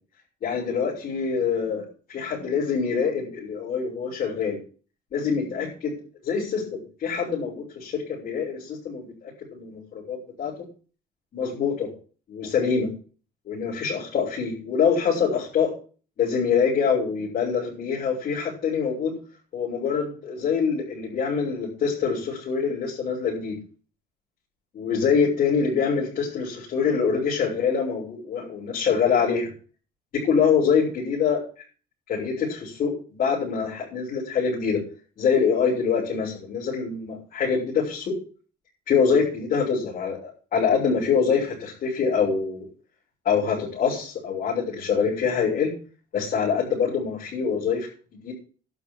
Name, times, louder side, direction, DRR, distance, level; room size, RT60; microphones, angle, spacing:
voice 1, 0.4-4.6 5.1-5.9 6.2-10.5 11.3-11.9 12.3-12.9 13.5-15.7 16.2-19.1 19.5-23.6 24.7-29.5 30.1-31.4 32.1-34.8 35.2-38.1 38.9-42.7 43.3-45.7 46.1-47.9 48.2-48.3, left 6 dB, 55° left, -6 dB, 6.9 m, -25 dB
12.0 x 7.2 x 8.8 m, 0.40 s
cardioid pair, 110°, 17 cm